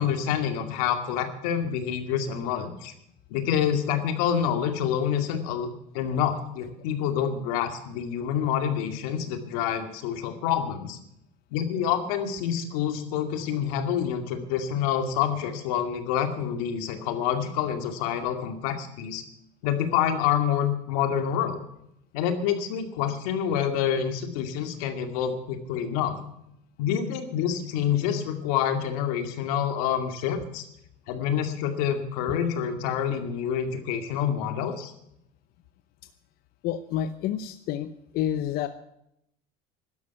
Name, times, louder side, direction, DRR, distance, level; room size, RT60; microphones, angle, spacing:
voice 1, 0.0-2.9 3.3-5.7 5.9-11.0 11.5-19.2 19.6-21.6 22.1-26.2 26.8-30.7 31.1-34.9, left 8 dB, 90° left, 7 dB, 2.3 m, -27 dB
voice 2, 36.6-38.7, left 11 dB, 55° left, 11 dB, 0.8 m, -29 dB
12.5 x 11.0 x 8.2 m, 0.78 s
cardioid pair, 145°, 18 cm